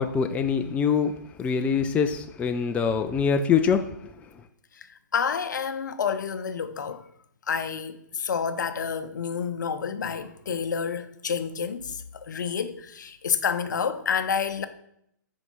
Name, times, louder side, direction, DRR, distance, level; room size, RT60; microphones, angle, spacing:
voice 1, 0.0-3.9, left 6 dB, 10° left, 0.4 m, -24 dB
voice 2, 5.1-7.0 7.5-14.7, left 6 dB, 70° left, 0.6 m, -29 dB
6.0 x 4.5 x 5.2 m
figure-of-eight pair, 125°, 10 cm